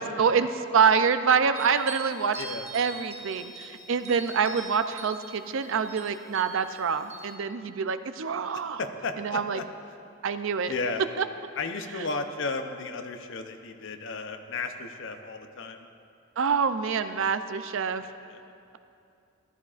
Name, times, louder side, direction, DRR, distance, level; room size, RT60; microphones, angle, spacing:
voice 1, 0.0-2.4 2.7-8.8 9.2-9.6 10.2-10.7 11.2-11.3 16.4-18.1, right 6 dB, 70° right, 10 dB, 0.5 m, -26 dB
sound 1, 1.5-7.3, right 3 dB, 35° right, 1.0 m, -43 dB
voice 2, 2.4-2.7 8.8-9.6 10.7-11.0 11.6-15.9 18.2-18.4, left 3 dB, 65° left, 7 dB, 0.7 m, -34 dB
14.0 x 12.0 x 2.5 m, 2.5 s
head